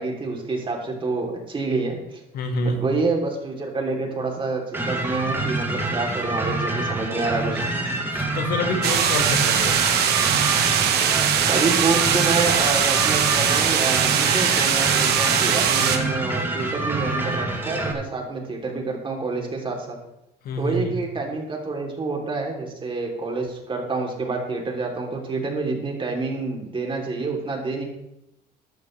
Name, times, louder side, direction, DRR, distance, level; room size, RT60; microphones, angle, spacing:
voice 1, 0.0-2.2 2.6-7.6 11.5-20.0 20.6-27.8, right 3 dB, 30° right, 1 dB, 3.2 m, -27 dB
voice 2, 2.3-2.9 8.1-9.8 20.4-21.0, left 1 dB, 65° left, 4 dB, 1.9 m, -27 dB
sound 1, 4.7-17.9, right 2 dB, 15° right, 2.5 m, -27 dB
sound 2, 8.8-16.0, right 8 dB, 75° right, 1.5 m, -21 dB
14.5 x 11.5 x 3.3 m, 0.85 s
cardioid pair, 110°, 17 cm